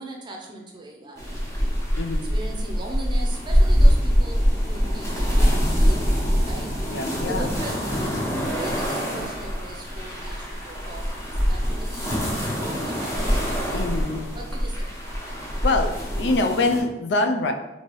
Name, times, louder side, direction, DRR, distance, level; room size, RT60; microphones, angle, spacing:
voice 1, 0.0-1.4 2.3-6.0 6.4-6.7 7.2-8.1 8.5-12.1 12.6-13.3 14.3-15.0, right 2 dB, 25° right, 0 dB, 0.6 m, -39 dB
sound 1, 1.2-16.8, equal, 15° left, 0.7 m, -23 dB
voice 2, 2.0-2.3 6.9-7.5 13.7-14.3 15.6-17.5, left 2 dB, 75° left, 5 dB, 0.4 m, -24 dB
4.5 x 2.8 x 3.0 m, 1.0 s
head